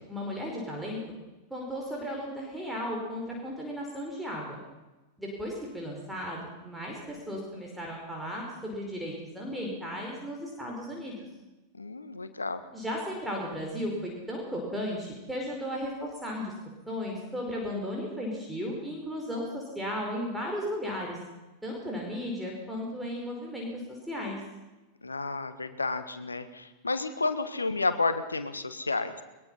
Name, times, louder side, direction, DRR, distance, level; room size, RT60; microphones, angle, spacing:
voice 1, 0.1-1.2 1.5-4.6 5.2-11.3 12.7-16.5 16.9-21.2 21.6-24.4, equal, 5° right, -2 dB, 5.2 m, -35 dB
voice 2, 11.8-12.6 25.0-29.1, left 3 dB, 80° left, 11 dB, 1.5 m, -31 dB
22.0 x 21.0 x 5.7 m, 1.1 s
figure-of-eight pair, 90°, 0 cm